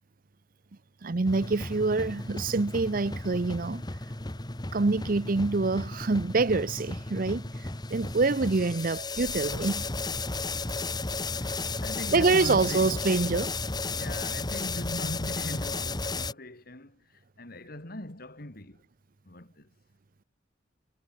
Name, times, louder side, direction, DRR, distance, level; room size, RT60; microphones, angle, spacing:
voice 1, 1.0-3.8 4.7-9.9 12.1-13.6, right 3 dB, 50° right, 0.7 m, -26 dB
sound 1, 1.3-16.3, left 3 dB, 20° left, 1.3 m, -34 dB
voice 2, 11.3-13.0 13.9-18.8 19.2-19.7, left 1 dB, 55° left, 3.3 m, -40 dB
head